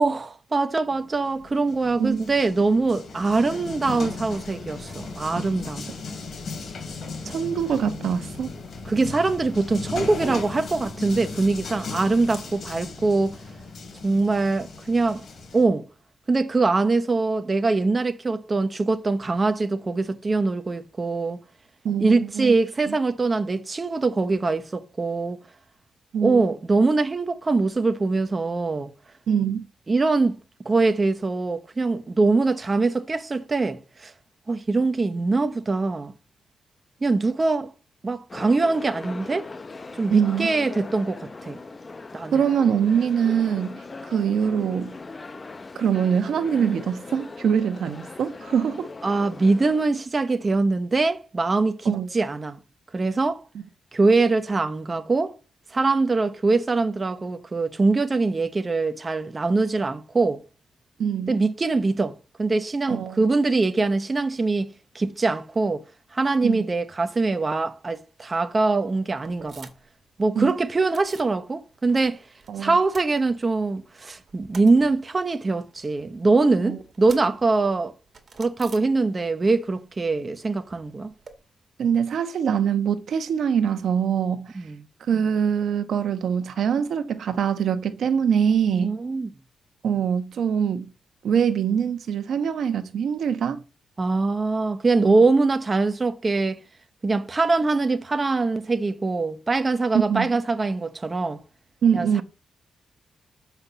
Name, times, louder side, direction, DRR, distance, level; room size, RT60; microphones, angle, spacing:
voice 1, 0.0-5.9 8.9-13.4 14.0-15.2 15.5-15.8 16.3-21.4 22.0-25.4 26.2-28.9 29.9-30.4 30.6-34.1 34.5-36.1 37.0-37.7 38.0-39.5 40.0-41.6 42.1-42.3 49.0-52.6 52.9-53.4 53.9-55.4 55.7-60.4 61.3-65.8 66.1-69.7 70.2-72.2 72.6-77.9 78.4-81.1 84.6-84.8 88.7-89.3 94.0-96.6 97.0-101.4 101.9-102.2, right 3 dB, 25° right, 0.8 m, -23 dB
sound 1, 0.9-15.6, left 3 dB, 50° left, 3.2 m, -36 dB
voice 2, 2.0-2.3 7.2-8.5 21.8-22.5 22.9-23.0 26.1-26.4 29.3-29.6 40.1-40.5 42.3-43.8 44.1-44.9 45.7-48.9 51.8-52.1 61.0-61.4 62.9-63.3 66.4-66.6 70.3-70.5 72.5-72.8 76.6-76.8 81.8-84.5 85.1-89.0 89.8-90.9 91.2-93.6 95.1-95.2 99.9-100.3 101.8-102.2, right 7 dB, 70° right, 1.1 m, -23 dB
sound 2, 38.3-49.8, left 3 dB, 25° left, 0.7 m, -39 dB
sound 3, 69.2-70.0 70.3-71.4 71.7-72.5 72.7-73.8 74.1-79.5 79.7-81.3, right 5 dB, 45° right, 2.1 m, -49 dB
7.8 x 5.7 x 6.7 m
cardioid pair, 125°, 0 cm